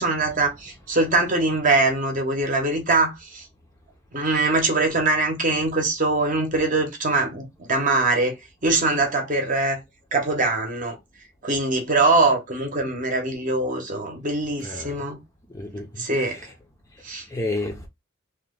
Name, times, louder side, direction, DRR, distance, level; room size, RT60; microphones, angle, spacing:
voice 1, 0.0-3.4 4.1-8.3 8.6-9.8 10.1-11.0 11.4-15.2 16.0-16.4 17.0-17.3, right 2 dB, 40° right, 0.9 m, -22 dB
voice 2, 14.6-15.0 15.5-16.5 17.3-17.9, left 2 dB, 15° left, 0.6 m, -31 dB
2.9 x 2.2 x 3.6 m
head